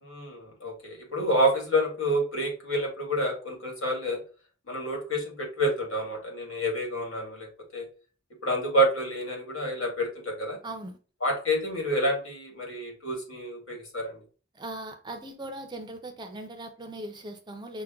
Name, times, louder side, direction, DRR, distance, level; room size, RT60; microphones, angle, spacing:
voice 1, 0.0-4.2 4.7-7.5 7.7-7.9 8.4-10.6 11.2-14.2, equal, 70° left, 1.7 m, -28 dB
voice 2, 10.6-11.0 14.5-17.8, right 1 dB, 20° right, 0.5 m, -39 dB
5.7 x 2.1 x 3.6 m
head